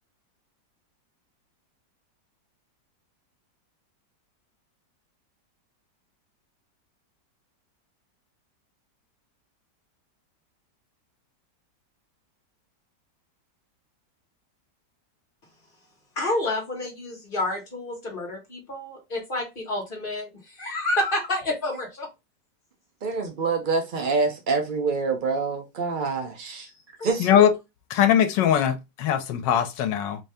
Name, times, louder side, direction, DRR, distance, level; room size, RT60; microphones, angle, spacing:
voice 1, 16.1-22.1 27.0-27.1, left 1 dB, 30° left, 1.5 m, -29 dB
voice 2, 23.0-26.7 27.0-27.5, right 4 dB, 70° right, 0.4 m, -26 dB
voice 3, 27.2-27.5 27.9-30.2, left 9 dB, 85° left, 1.4 m, -21 dB
3.8 x 2.7 x 3.3 m
omnidirectional pair, 1.9 m